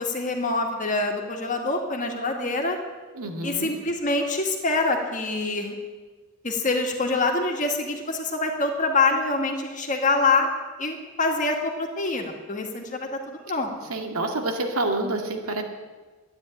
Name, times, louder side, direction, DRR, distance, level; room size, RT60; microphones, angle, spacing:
voice 1, 0.0-2.8 3.4-5.8 6.4-10.5 10.8-13.9, left 3 dB, 35° left, 3 dB, 2.0 m, -25 dB
voice 2, 3.1-3.8 13.5-13.6 13.9-15.6, right 2 dB, 85° right, 3 dB, 2.1 m, -28 dB
13.0 x 9.9 x 9.1 m, 1.3 s
head